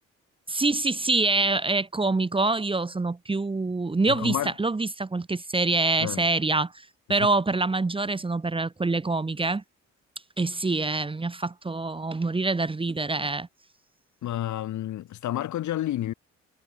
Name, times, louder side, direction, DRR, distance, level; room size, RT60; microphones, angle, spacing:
voice 1, 0.5-9.6 10.4-13.5, right 3 dB, 20° right, 1.1 m, -25 dB
voice 2, 4.1-4.5 6.0-6.2 14.2-16.1, left 13 dB, 70° left, 1.6 m, -30 dB
cardioid pair, 90°, 30 cm